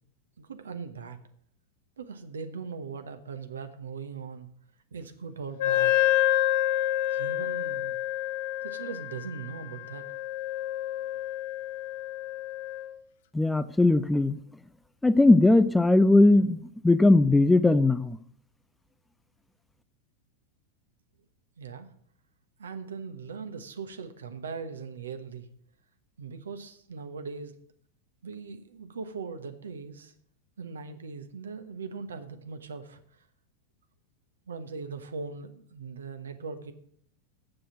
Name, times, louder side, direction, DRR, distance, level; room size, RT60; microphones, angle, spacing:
voice 1, 0.4-1.2 2.0-4.5 4.9-5.9 7.1-8.0 8.6-10.0 21.6-21.9 22.6-25.5 26.2-27.6 28.2-30.1 30.6-33.2 34.5-36.7, right 5 dB, 70° right, 8 dB, 1.0 m, -40 dB
Wind instrument woodwind instrument, 5.6-12.9, left 14 dB, 55° left, 0.8 m, -28 dB
voice 2, 13.3-14.4 15.0-16.6 16.8-18.2, left 2 dB, 5° left, 14 dB, 0.5 m, -19 dB
7.6 x 6.8 x 8.3 m, 0.64 s
figure-of-eight pair, 90°, 0 cm